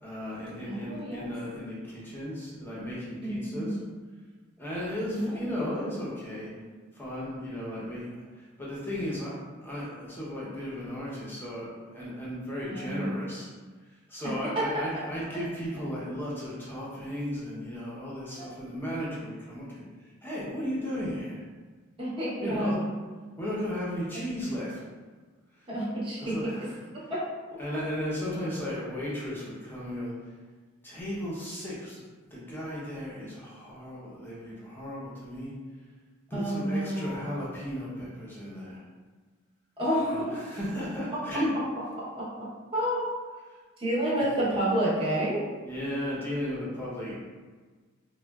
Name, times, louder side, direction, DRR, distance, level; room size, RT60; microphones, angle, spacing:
voice 1, 0.0-3.8 4.6-6.5 6.9-9.3 9.6-13.5 14.1-19.8 20.2-21.4 22.4-22.8 23.4-24.8 26.2-26.8 27.6-30.3 30.8-32.0 32.3-35.5 36.3-38.8 40.0-41.5 43.5-43.6 44.1-44.2 45.6-47.1, equal, 10° left, -7 dB, 0.6 m, -35 dB
voice 2, 0.6-1.3 3.2-3.8 5.1-5.4 12.7-13.2 14.2-14.6 18.4-18.5 22.0-22.8 25.7-26.3 27.1-27.2 36.3-37.2 39.8-40.4 42.2-42.3 42.7-43.1 43.8-45.4, right 1 dB, 25° right, -8 dB, 0.7 m, -29 dB
3.6 x 2.1 x 2.2 m, 1.4 s
head